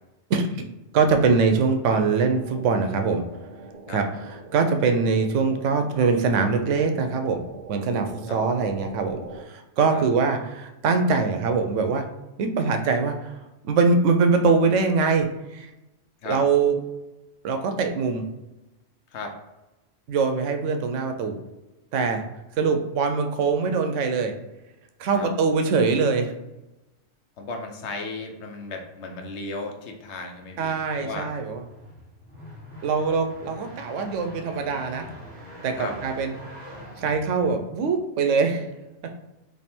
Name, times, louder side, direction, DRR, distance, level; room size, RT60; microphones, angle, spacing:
voice 1, 0.3-0.7 0.9-3.2 3.9-7.4 7.7-12.1 12.4-13.4 13.6-15.7 16.2-16.8 17.4-18.2 20.1-21.4 21.9-22.2 22.6-24.3 25.0-26.3 30.6-31.6 32.8-35.0 35.6-36.4 37.0-38.7, right 4 dB, 85° right, 6 dB, 0.9 m, -23 dB
sound 1, 1.9-9.4, right 3 dB, 65° right, 0.4 m, -43 dB
voice 2, 27.4-31.3 35.8-35.9, left 3 dB, 70° left, 4 dB, 0.9 m, -35 dB
sound 2, 30.5-38.0, equal, 45° right, 1.2 m, -44 dB
3.4 x 2.6 x 4.2 m, 1.0 s
omnidirectional pair, 1.2 m